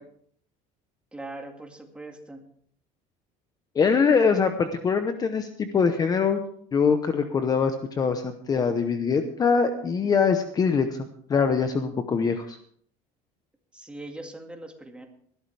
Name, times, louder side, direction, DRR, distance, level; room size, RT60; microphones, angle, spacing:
voice 1, 1.1-2.4 13.7-15.1, right 2 dB, 5° right, 3 dB, 2.0 m, -41 dB
voice 2, 3.7-6.4 6.7-12.6, left 5 dB, 25° left, 8 dB, 0.8 m, -23 dB
19.5 x 12.5 x 3.4 m, 0.62 s
cardioid pair, 150°, 15 cm